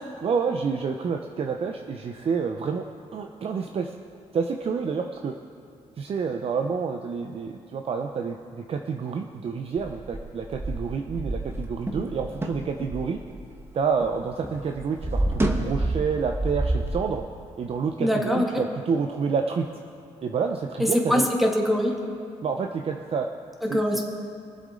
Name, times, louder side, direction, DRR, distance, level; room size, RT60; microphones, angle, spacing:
voice 1, 0.2-2.8 3.1-3.9 4.3-5.3 6.0-13.2 13.7-17.2 17.6-19.7 20.2-21.3 22.4-23.3 23.7-24.0, right 5 dB, 50° right, 4 dB, 0.7 m, -28 dB
sound 1, 9.8-14.2 14.4-17.0, right 1 dB, 20° right, 1.2 m, -29 dB
voice 2, 18.0-18.5 20.8-21.9 23.7-24.0, left 1 dB, ahead, 0 dB, 1.7 m, -22 dB
22.0 x 7.8 x 3.8 m, 2.6 s
cardioid pair, 100°, 13 cm